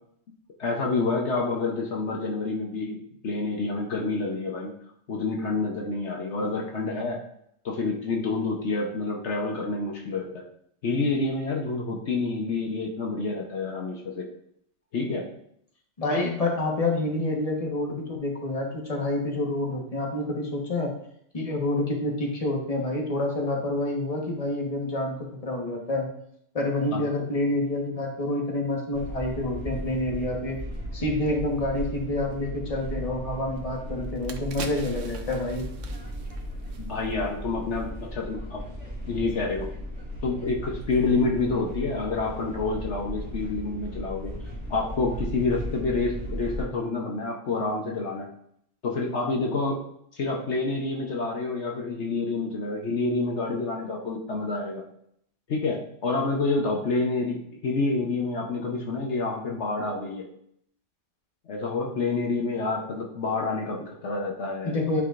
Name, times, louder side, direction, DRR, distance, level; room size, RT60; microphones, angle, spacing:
voice 1, 0.6-3.0 3.2-4.7 5.1-7.2 7.6-10.4 10.8-14.3 14.9-15.2 26.9-27.0 36.8-38.6 39.1-39.7 40.2-44.3 44.7-48.3 48.8-49.8 50.1-54.8 55.5-60.3 61.5-64.8, left 3 dB, 70° left, 0 dB, 1.2 m, -28 dB
voice 2, 16.0-20.9 21.3-26.1 26.5-30.6 30.9-35.7 64.6-65.0, left 2 dB, 30° left, -1 dB, 1.4 m, -28 dB
sound 1, 28.9-46.6, equal, 35° right, 2.1 m, -36 dB
sound 2, 33.6-33.7 34.0-37.3 37.6-37.8, right 5 dB, 85° right, 1.1 m, -42 dB
10.5 x 4.8 x 2.5 m, 0.70 s
omnidirectional pair, 1.2 m